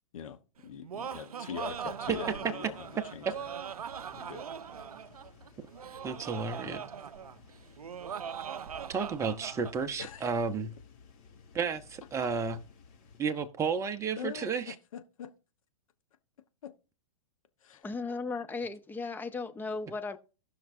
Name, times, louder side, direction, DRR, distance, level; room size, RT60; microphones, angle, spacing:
voice 1, 0.1-3.5 4.1-4.4 6.6-6.8 10.0-10.3 14.2-15.3 16.6-16.7 17.6-17.8, left 8 dB, 65° left, 1.3 m, -43 dB
Laughter, 0.6-9.8, right 8 dB, 90° right, 0.4 m, -41 dB
sound 1, 1.6-13.2, left 5 dB, 35° left, 2.8 m, -57 dB
voice 2, 6.0-6.8 8.9-10.7 11.5-12.6 13.2-14.7, right 5 dB, 15° right, 0.9 m, -32 dB
voice 3, 17.8-20.2, left 4 dB, 10° left, 0.7 m, -36 dB
17.5 x 5.9 x 2.7 m
hypercardioid pair, 115°, 19 cm